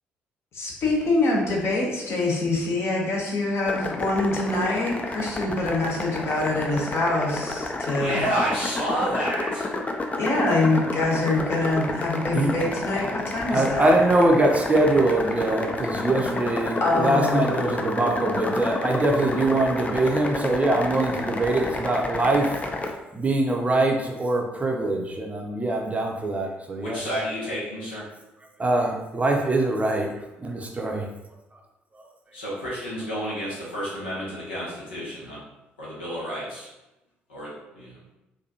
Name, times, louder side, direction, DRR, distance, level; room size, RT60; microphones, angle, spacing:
voice 1, 0.5-8.2 10.2-13.9 16.8-17.5, left 2 dB, 45° left, -2 dB, 1.0 m, -25 dB
sound 1, 3.6-22.9, left 2 dB, 25° left, 0.5 m, -30 dB
voice 2, 7.9-9.7 26.7-28.1 32.3-35.4 35.8-36.7 37.3-38.0, equal, 80° left, -7 dB, 1.1 m, -30 dB
voice 3, 13.5-22.5 23.1-27.0 28.6-30.1 30.4-31.1, right 2 dB, 25° right, 1 dB, 0.6 m, -23 dB
4.2 x 2.6 x 2.8 m, 0.97 s
figure-of-eight pair, 45°, 6 cm